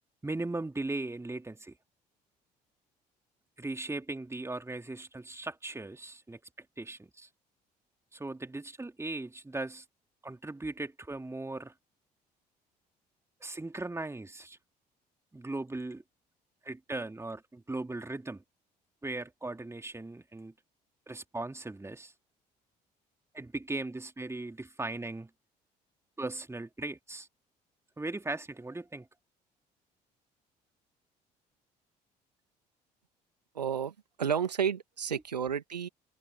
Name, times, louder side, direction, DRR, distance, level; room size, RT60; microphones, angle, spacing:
voice 1, 0.2-1.7 3.6-7.3 8.1-9.8 10.2-11.7 13.4-14.6 15.3-16.0 16.6-18.4 19.0-20.5 21.1-22.1 23.3-25.3 26.2-27.3 28.0-29.1, right 2 dB, 15° right, 3.0 m, -38 dB
voice 2, 33.5-35.9, right 7 dB, 85° right, 2.0 m, -31 dB
figure-of-eight pair, 50°, 21 cm